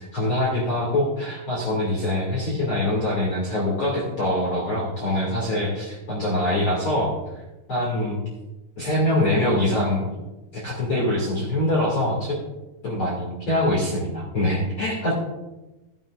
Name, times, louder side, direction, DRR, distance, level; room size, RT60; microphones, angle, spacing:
voice 1, 0.0-7.1 7.7-8.2 8.8-10.2 10.5-12.4 12.8-15.1, left 1 dB, 40° left, -6 dB, 2.4 m, -24 dB
15.5 x 10.5 x 2.4 m, 1.1 s
omnidirectional pair, 4.6 m